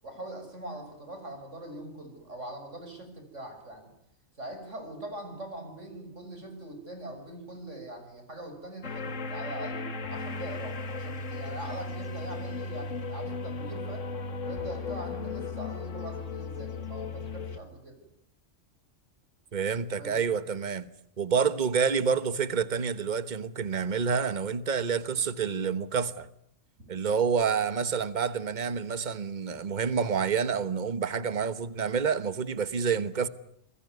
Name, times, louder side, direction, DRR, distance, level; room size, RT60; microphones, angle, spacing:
voice 1, 0.0-3.9 4.4-9.8 10.1-14.1 14.4-17.9 20.0-20.2, right 1 dB, 70° right, 6.7 m, -42 dB
sound 1, 8.8-17.6, left 3 dB, 75° left, 1.9 m, -36 dB
voice 2, 19.5-20.9 21.2-26.3 26.9-33.3, right 6 dB, 40° right, 1.3 m, -28 dB
27.5 x 21.5 x 9.5 m
omnidirectional pair, 1.3 m